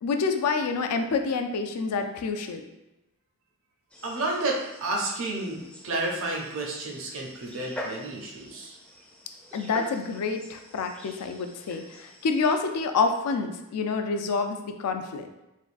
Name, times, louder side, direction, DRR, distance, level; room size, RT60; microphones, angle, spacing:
voice 1, 0.0-2.6 9.5-15.4, left 4 dB, 85° left, 6 dB, 0.4 m, -28 dB
sound 1, 3.9-12.5, equal, 5° left, 0.4 m, -45 dB
voice 2, 4.0-8.7, right 2 dB, 60° right, -1 dB, 0.6 m, -31 dB
3.5 x 2.3 x 2.5 m, 0.94 s
head